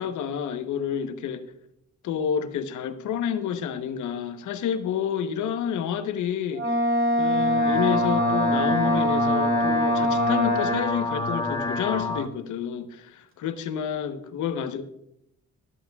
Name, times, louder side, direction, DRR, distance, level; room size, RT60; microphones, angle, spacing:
voice 1, 0.0-1.4 2.0-6.7 7.2-14.8, left 8 dB, 75° left, 1.0 m, -29 dB
Wind instrument woodwind instrument, 6.5-11.1, equal, 45° right, 2.5 m, -23 dB
sound 1, 7.3-12.3, left 2 dB, 15° left, 1.1 m, -29 dB
13.5 x 11.0 x 2.3 m
cardioid pair, 90°, 30 cm